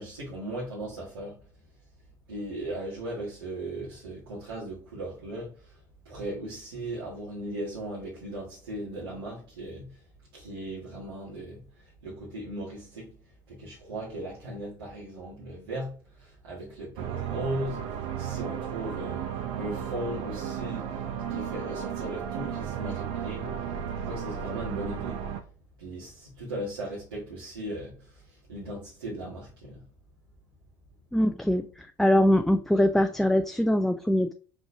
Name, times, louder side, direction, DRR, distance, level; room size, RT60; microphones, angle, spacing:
voice 1, 0.0-1.4 2.3-5.8 6.0-10.0 10.3-13.2 13.5-17.8 18.2-21.0 21.3-23.6 24.0-25.2 25.8-29.8, right 1 dB, 80° right, 1.7 m, -37 dB
sound 1, 17.0-25.4, right 8 dB, 65° right, 0.7 m, -34 dB
voice 2, 31.1-34.3, left 1 dB, 5° left, 0.3 m, -23 dB
4.8 x 3.8 x 2.7 m
hypercardioid pair, 70°, 12 cm